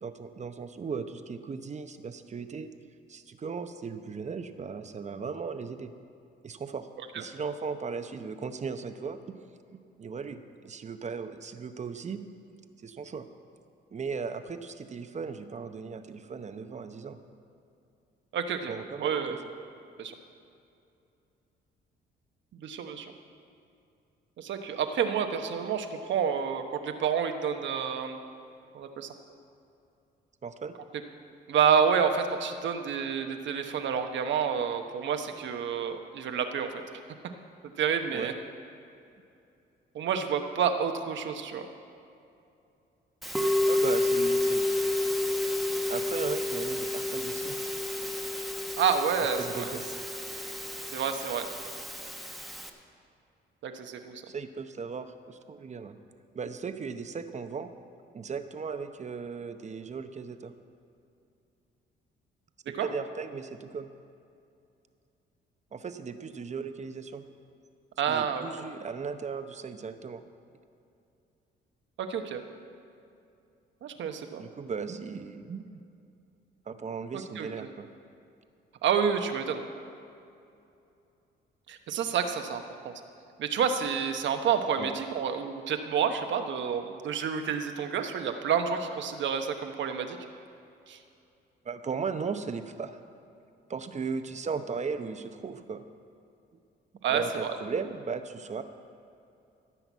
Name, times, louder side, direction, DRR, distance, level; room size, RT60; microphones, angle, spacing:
voice 1, 0.0-2.7 3.1-5.9 6.4-9.2 9.7-12.2 12.8-13.3 13.9-17.2 18.7-19.4 30.4-30.7 38.1-38.4 43.6-44.7 45.9-47.6 49.4-50.0 54.3-56.0 56.3-57.7 58.1-60.5 62.7-63.9 65.7-67.2 68.1-70.3 74.4-75.7 76.7-77.9 84.8-84.9 91.6-93.0 93.7-95.8 97.1-98.6, right 5 dB, 35° right, 9 dB, 0.8 m, -37 dB
voice 2, 18.3-19.4 20.0-20.1 22.5-23.1 24.4-28.2 28.7-29.1 31.5-36.7 37.8-38.3 39.9-41.7 48.8-49.7 50.9-51.5 53.6-54.2 62.8-62.9 68.0-68.4 72.0-72.4 73.8-74.4 77.1-77.7 78.8-79.6 81.7-82.9 83.4-90.2 90.9-91.0 97.0-97.6, right 7 dB, 70° right, 6 dB, 1.1 m, -29 dB
Musical instrument, 43.2-52.7, left 2 dB, ahead, 1.1 m, -30 dB
15.5 x 5.8 x 8.2 m, 2.6 s
cardioid pair, 90°, 20 cm